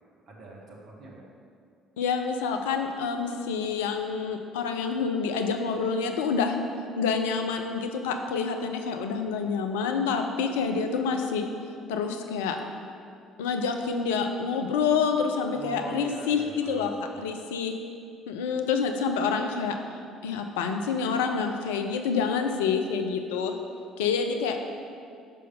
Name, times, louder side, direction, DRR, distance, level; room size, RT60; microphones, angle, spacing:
voice 1, 0.2-1.2 15.5-17.3, right 2 dB, 50° right, -2 dB, 1.3 m, -43 dB
voice 2, 2.0-6.6 7.0-11.4 11.9-12.6 13.4-16.9 17.2-17.7 18.3-19.7 20.2-23.6 24.0-24.6, left 5 dB, 65° left, 5 dB, 0.5 m, -27 dB
5.5 x 5.2 x 5.4 m, 2.4 s
figure-of-eight pair, 50°, 0 cm